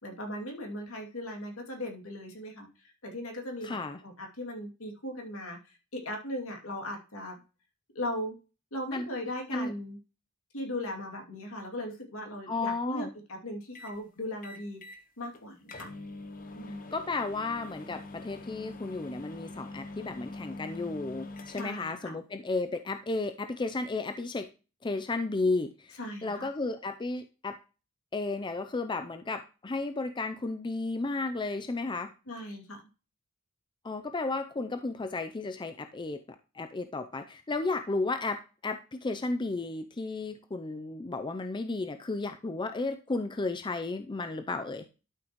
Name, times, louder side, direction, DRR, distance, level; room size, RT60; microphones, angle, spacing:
voice 1, 0.0-3.8 4.0-5.8 6.0-7.4 7.9-8.4 8.7-10.0 10.5-14.8 15.2-15.9 16.5-16.9 21.6-22.2 26.0-26.5 32.3-32.8, left 1 dB, 70° left, 1 dB, 2.6 m, -38 dB
voice 2, 3.6-4.0 8.9-9.1 9.5-9.7 12.5-13.1 16.9-24.5 24.8-27.6 28.1-32.1 33.8-36.2 36.5-44.9, left 3 dB, 20° left, 8 dB, 0.5 m, -33 dB
sound 1, 13.8-14.0 14.4-15.0 15.3-15.4 15.7-22.0, left 2 dB, 40° left, 0.9 m, -44 dB
12.0 x 6.3 x 3.0 m, 0.32 s
head